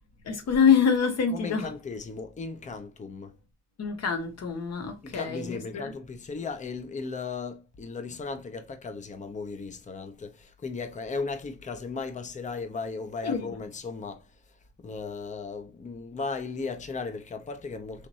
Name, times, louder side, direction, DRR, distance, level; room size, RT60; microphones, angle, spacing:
voice 1, 0.3-1.7 3.8-5.9 13.2-13.4, left 6 dB, 60° left, 1.3 m, -25 dB
voice 2, 1.3-3.3 5.0-18.1, left 4 dB, 25° left, 0.7 m, -36 dB
4.9 x 3.1 x 2.6 m
cardioid pair, 90°, 30 cm